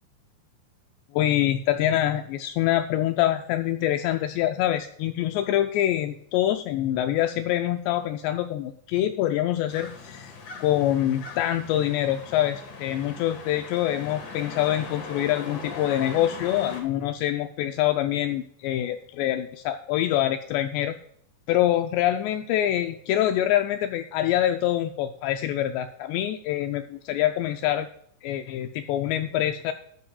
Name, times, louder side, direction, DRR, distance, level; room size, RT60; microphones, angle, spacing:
voice 1, 1.1-10.3 10.6-20.9 21.5-27.9 28.2-29.7, left 12 dB, 85° left, 7 dB, 2.5 m, -25 dB
sound 1, 9.7-16.8, left 4 dB, 55° left, 2.4 m, -40 dB
13.5 x 10.5 x 2.3 m, 0.65 s
omnidirectional pair, 5.3 m